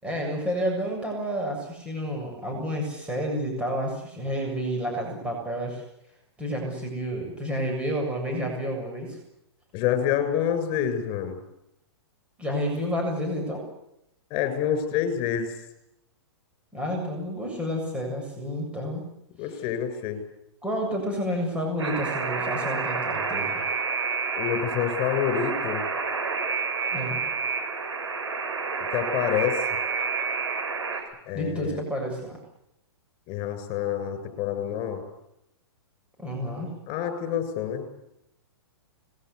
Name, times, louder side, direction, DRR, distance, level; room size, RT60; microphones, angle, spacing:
voice 1, 0.0-5.8 6.4-9.2 12.4-13.6 16.7-19.0 20.6-23.7 26.9-27.2 31.3-32.4 36.2-36.7, equal, 10° right, 0 dB, 7.4 m, -30 dB
voice 2, 9.7-11.4 14.3-15.6 19.4-20.2 24.3-25.8 28.8-29.6 31.2-31.8 33.3-35.0 36.9-37.9, left 9 dB, 35° left, 9 dB, 7.4 m, -27 dB
Alarm, 21.8-31.0, right 5 dB, 90° right, 7.1 m, -29 dB
26.5 x 21.0 x 8.4 m, 0.82 s
hypercardioid pair, 130°, 14 cm